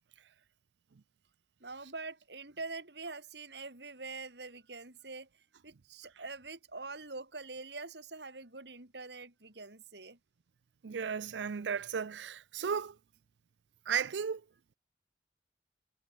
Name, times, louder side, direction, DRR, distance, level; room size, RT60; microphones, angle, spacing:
voice 1, 1.6-5.3 5.6-10.2, right 3 dB, 70° right, 3.5 m, -44 dB
voice 2, 10.8-12.9 13.9-14.4, right 7 dB, 85° right, 0.5 m, -34 dB
head